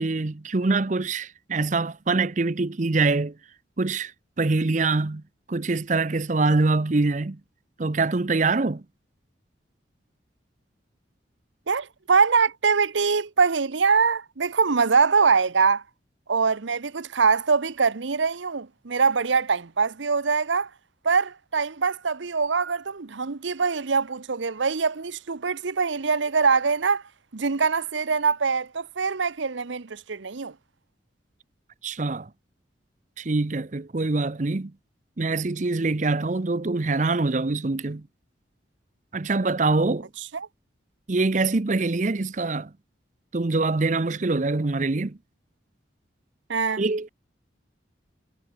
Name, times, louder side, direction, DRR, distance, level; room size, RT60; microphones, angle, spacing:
voice 1, 0.0-3.3 3.8-4.1 4.4-5.2 5.5-7.4 7.8-8.8 31.8-32.3 33.2-34.7 35.2-38.0 39.1-40.1 41.1-42.7 43.3-45.2 46.8-47.1, right 3 dB, 40° right, 0.6 m, -24 dB
voice 2, 11.7-15.8 16.3-20.7 21.0-27.0 27.3-30.5 40.3-40.5 46.5-46.8, right 5 dB, 75° right, 0.9 m, -23 dB
head